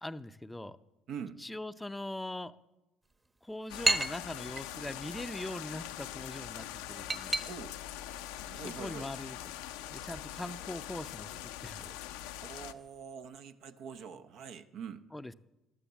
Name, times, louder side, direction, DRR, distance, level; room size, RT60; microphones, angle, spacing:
voice 1, 0.0-0.8 1.4-2.5 3.4-7.4 8.6-9.4 9.9-11.8 15.1-15.3, left 1 dB, 10° left, 12 dB, 0.6 m, -41 dB
voice 2, 1.1-1.4 7.5-7.8 8.5-9.1 12.4-15.1, right 7 dB, 65° right, 9 dB, 0.8 m, -44 dB
sound 1, 3.0-13.0, right 2 dB, 20° right, 1.1 m, -39 dB
sound 2, 3.7-12.7, left 12 dB, 80° left, 0.6 m, -43 dB
13.0 x 9.9 x 7.2 m, 0.99 s
hypercardioid pair, 60°, 0 cm